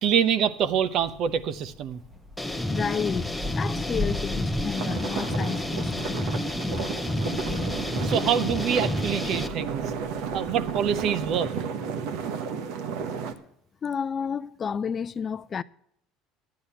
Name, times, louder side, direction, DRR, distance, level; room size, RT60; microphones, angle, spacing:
voice 1, 0.0-2.0 8.0-9.9 10.3-11.5, right 8 dB, 55° right, 0.8 m, -25 dB
sound 1, 0.7-11.5, left 2 dB, 15° right, 1.1 m, -40 dB
sound 2, 2.4-9.5, left 1 dB, 5° left, 0.9 m, -30 dB
voice 2, 2.7-6.3 13.8-15.6, left 6 dB, 30° left, 0.4 m, -31 dB
sound 3, 4.8-13.3, right 6 dB, 75° right, 1.2 m, -32 dB
11.0 x 9.6 x 5.7 m
supercardioid pair, 120°, 0 cm